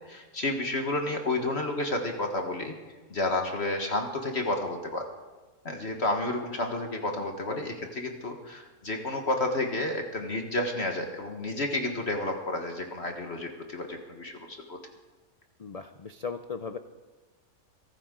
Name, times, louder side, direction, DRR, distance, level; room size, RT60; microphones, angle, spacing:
voice 1, 0.0-2.8 3.1-5.0 5.6-14.8, left 2 dB, 45° left, 3 dB, 1.7 m, -31 dB
voice 2, 7.1-7.9 15.6-16.8, left 5 dB, 75° left, 8 dB, 0.3 m, -38 dB
23.0 x 13.0 x 3.8 m, 1.3 s
omnidirectional pair, 1.6 m